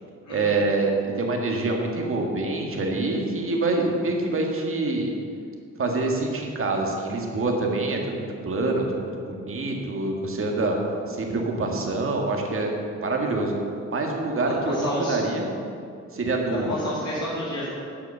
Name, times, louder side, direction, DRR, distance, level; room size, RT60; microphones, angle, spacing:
voice 1, 0.3-5.1 5.8-10.8 11.1-12.7 13.0-13.5 13.9-14.8 15.1-15.5 16.1-16.7, right 2 dB, 45° right, 1 dB, 1.8 m, -26 dB
voice 2, 14.6-15.2 16.5-17.7, left 1 dB, 60° left, -9 dB, 2.6 m, -29 dB
10.5 x 4.9 x 7.0 m, 2.4 s
cardioid pair, 80°, 30 cm